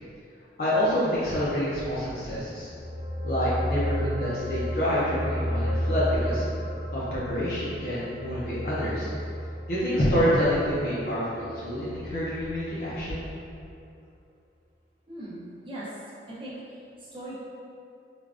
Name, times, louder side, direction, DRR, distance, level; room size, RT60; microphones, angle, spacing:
voice 1, 0.6-2.7 3.2-6.5 6.9-9.1 9.7-13.2, equal, 50° left, -10 dB, 0.5 m, -27 dB
sound 1, 2.5-13.1 13.4-13.6, equal, 90° right, 0.6 m, -33 dB
voice 2, 15.1-15.9 16.3-17.4, right 1 dB, 30° right, -8 dB, 0.6 m, -40 dB
3.3 x 2.2 x 2.4 m, 2.6 s
head